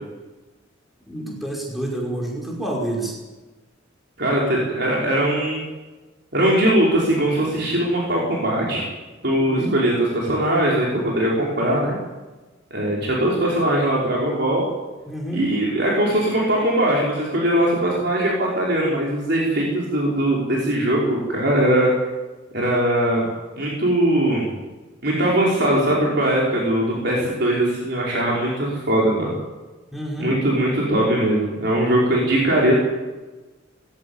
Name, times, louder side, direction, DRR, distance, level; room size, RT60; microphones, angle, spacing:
voice 1, 1.1-3.1 9.4-9.8 15.1-15.5 29.9-30.4, right 1 dB, ahead, -3 dB, 5.4 m, -28 dB
voice 2, 4.2-5.6 6.3-8.8 9.2-12.0 12.7-14.7 15.3-21.9 22.5-23.3 23.6-24.5 25.0-29.3 30.2-32.7, right 1 dB, 60° right, -4 dB, 5.4 m, -20 dB
20.5 x 16.0 x 9.0 m, 1.2 s
head